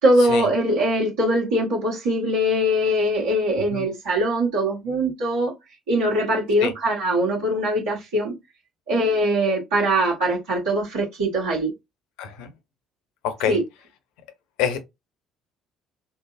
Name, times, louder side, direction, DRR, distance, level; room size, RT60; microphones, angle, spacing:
voice 1, 0.0-5.5 5.9-8.3 8.9-11.7 13.5-13.6, right 1 dB, 70° right, 1.4 m, -22 dB
voice 2, 12.2-12.5 13.2-13.6 14.6-14.8, left 8 dB, 65° left, 0.7 m, -25 dB
3.3 x 2.0 x 2.5 m
figure-of-eight pair, 50°, 0 cm